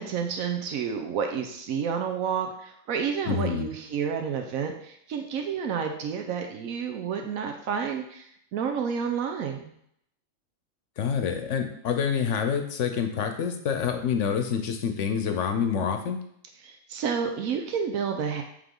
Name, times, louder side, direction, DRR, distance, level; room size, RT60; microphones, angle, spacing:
voice 1, 0.0-9.7 16.6-18.4, right 7 dB, 85° right, 4 dB, 1.1 m, -30 dB
voice 2, 3.3-3.7 11.0-16.2, left 7 dB, 65° left, 6 dB, 1.0 m, -27 dB
8.3 x 3.5 x 3.7 m, 0.69 s
omnidirectional pair, 1.4 m